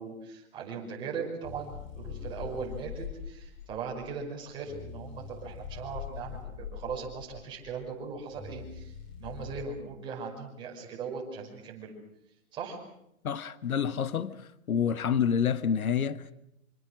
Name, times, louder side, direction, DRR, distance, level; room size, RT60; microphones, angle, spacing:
voice 1, 0.0-11.9 12.5-12.8, right 5 dB, 10° right, 5.5 m, -39 dB
sound 1, 1.4-9.7, left 7 dB, 20° left, 3.2 m, -43 dB
voice 2, 13.2-14.4 14.7-16.3, left 7 dB, 80° left, 1.4 m, -28 dB
26.5 x 25.5 x 6.4 m
hypercardioid pair, 170°, 42 cm